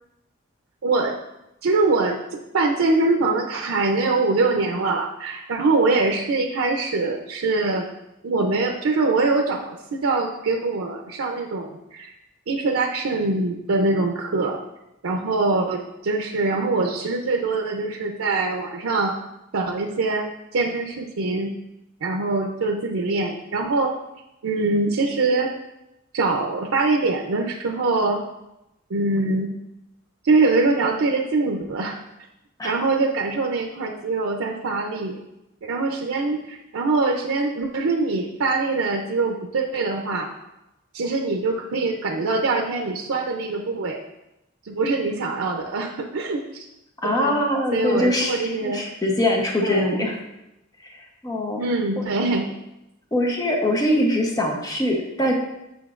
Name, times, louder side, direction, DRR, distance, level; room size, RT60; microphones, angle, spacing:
voice 1, 0.8-1.1 1.6-2.2 2.5-7.9 8.2-12.1 12.5-14.6 15.0-19.1 19.5-20.2 20.5-21.5 22.0-23.9 24.4-25.5 26.1-28.2 28.9-29.5 30.2-32.0 32.6-35.2 35.6-40.3 40.9-44.0 44.6-46.7 47.0-47.4 47.7-48.8 49.6-50.1 51.6-52.5, right 3 dB, 85° right, 2 dB, 0.5 m, -23 dB
voice 2, 47.0-50.2 51.2-51.6 53.1-55.3, left 1 dB, 15° left, 0 dB, 0.8 m, -22 dB
7.0 x 5.7 x 2.4 m, 0.90 s
head